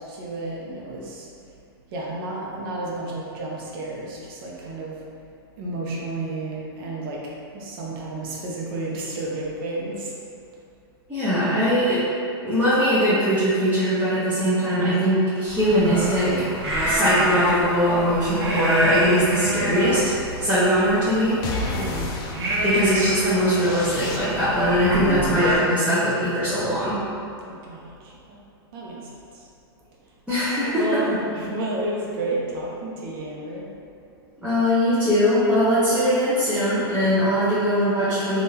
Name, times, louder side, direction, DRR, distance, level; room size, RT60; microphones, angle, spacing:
voice 1, 0.1-1.3 1.9-5.0 5.6-10.1 14.7-15.0 21.7-22.3 27.4-28.4 28.7-29.1 30.5-33.7, right 2 dB, 60° right, -3 dB, 0.8 m, -31 dB
voice 2, 11.1-12.0 12.4-16.3 16.8-20.1 20.4-21.4 22.6-27.0 30.3-31.0 34.4-38.4, equal, 10° right, -14 dB, 0.8 m, -21 dB
sound 1, 15.5-25.6, right 1 dB, 90° right, 0.8 m, -28 dB
sound 2, 21.4-24.7, left 3 dB, 30° left, 0.4 m, -32 dB
3.6 x 2.6 x 2.8 m, 2.5 s
hypercardioid pair, 125°, 13 cm